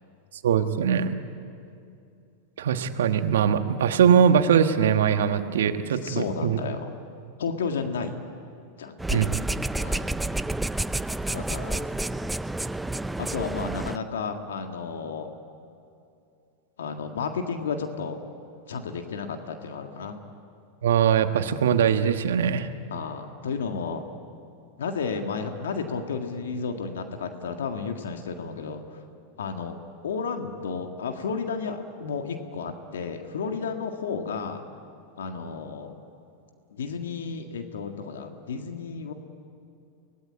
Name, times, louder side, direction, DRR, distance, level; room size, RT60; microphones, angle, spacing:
voice 1, 0.4-1.1 2.6-6.6 9.1-9.3 20.8-22.7, right 8 dB, 80° right, 8 dB, 1.4 m, -21 dB
voice 2, 6.0-6.9 7.4-8.2 8.8-9.4 9.8-10.1 11.3-11.8 13.2-15.3 16.8-18.2 18.7-20.2 22.9-24.0 24.8-29.0 29.4-29.8 30.0-34.6 35.2-35.9 36.7-39.1, left 5 dB, 85° left, 5 dB, 1.8 m, -32 dB
sound 1, 9.0-14.0, right 2 dB, 5° right, 0.6 m, -29 dB
24.5 x 19.0 x 9.6 m, 2.6 s
hypercardioid pair, 105°, 0 cm